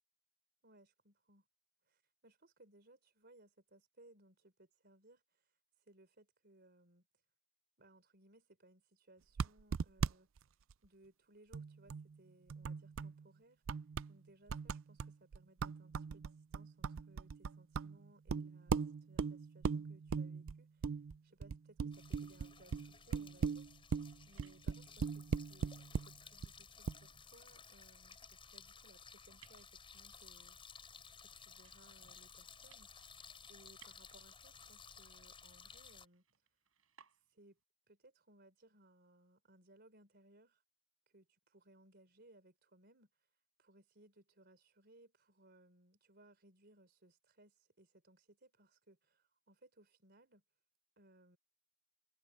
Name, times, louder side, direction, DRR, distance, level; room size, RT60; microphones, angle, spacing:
voice 1, 0.6-1.5 1.8-7.1 7.8-10.5 10.8-13.6 14.1-24.0 24.3-30.8 31.2-33.1 33.5-36.4 37.1-37.6 37.9-40.6 41.1-43.3 43.6-50.4 51.0-51.4, right 1 dB, 50° right, 3.8 m, -66 dB
sound 1, 9.4-10.1 10.4-10.5 10.7-10.8 11.5-12.2 12.5-13.2 13.7-14.1 14.5-26.1 26.4-26.5 26.9-27.0, right 5 dB, 70° right, 0.4 m, -39 dB
sound 2, 21.9-36.1, left 5 dB, 25° left, 7.3 m, -57 dB
sound 3, 23.7-37.6, right 8 dB, 90° right, 6.3 m, -71 dB
head